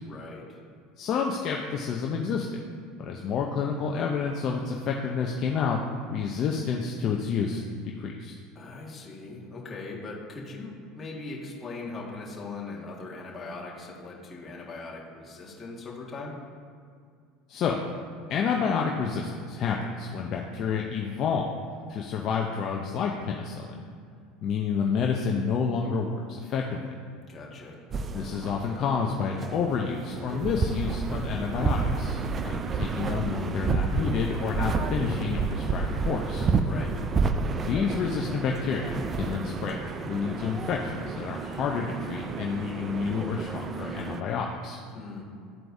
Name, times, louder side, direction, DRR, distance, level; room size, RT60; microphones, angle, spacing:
voice 1, 0.0-0.6 8.6-16.4 27.3-27.8 36.6-37.0 44.9-45.2, left 3 dB, 25° left, -4 dB, 1.7 m, -40 dB
voice 2, 1.0-2.5 3.0-5.8 6.1-7.6 8.0-8.3 17.5-17.8 18.3-21.6 21.9-23.7 24.4-26.9 28.1-36.5 37.6-44.8, left 6 dB, 50° left, 0 dB, 0.6 m, -29 dB
sound 1, 27.9-44.2, right 4 dB, 30° right, 0.4 m, -30 dB
12.0 x 4.5 x 2.7 m, 2.2 s
supercardioid pair, 100°, 0 cm